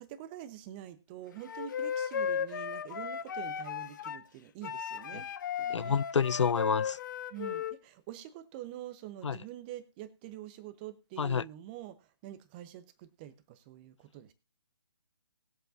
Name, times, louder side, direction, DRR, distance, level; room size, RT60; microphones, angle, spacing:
voice 1, 0.0-5.3 5.6-6.0 7.3-14.3, right 12 dB, 20° right, 0.8 m, -46 dB
Wind instrument woodwind instrument, 1.5-4.2 4.6-7.7, left 7 dB, 40° left, 0.9 m, -35 dB
voice 2, 5.7-7.0 9.2-9.4 11.2-11.4, left 6 dB, 70° left, 0.4 m, -28 dB
20.0 x 7.8 x 2.6 m
figure-of-eight pair, 145°, 16 cm